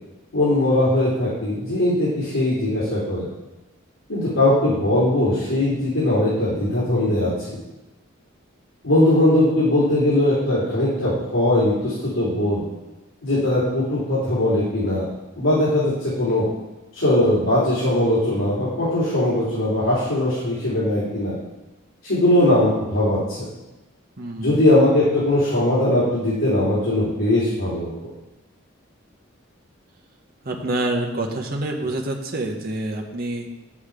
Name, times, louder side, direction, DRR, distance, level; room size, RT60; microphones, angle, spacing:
voice 1, 0.3-3.3 4.1-7.6 8.8-12.6 13.2-15.0 15.4-16.5 16.9-21.3 22.0-23.2 24.4-27.9, left 1 dB, 90° left, -10 dB, 3.4 m, -20 dB
voice 2, 24.2-24.6 30.4-33.5, right 1 dB, 45° right, 0 dB, 1.1 m, -27 dB
8.7 x 7.2 x 5.0 m, 1.1 s
head